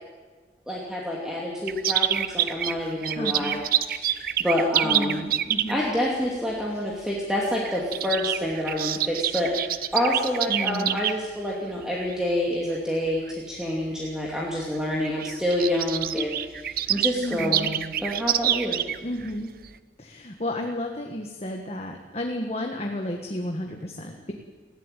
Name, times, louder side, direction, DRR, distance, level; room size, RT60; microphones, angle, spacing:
voice 1, 0.7-3.6 3.9-5.3 5.7-18.9, left 1 dB, 5° right, -4 dB, 2.6 m, -28 dB
sound 1, 1.7-5.9 6.9-7.2 7.5-11.1 11.8-12.1 12.8-12.9 13.2-13.3 14.3-14.4 14.6-14.7 14.9-19.3 19.6-19.7, right 11 dB, 55° right, 0.8 m, -27 dB
voice 2, 3.1-3.6 4.8-5.8 6.7-6.9 10.5-11.0 17.2-17.7 19.0-19.5 20.0-24.3, left 1 dB, 35° left, 3 dB, 1.5 m, -32 dB
19.5 x 15.0 x 9.1 m, 1.4 s
head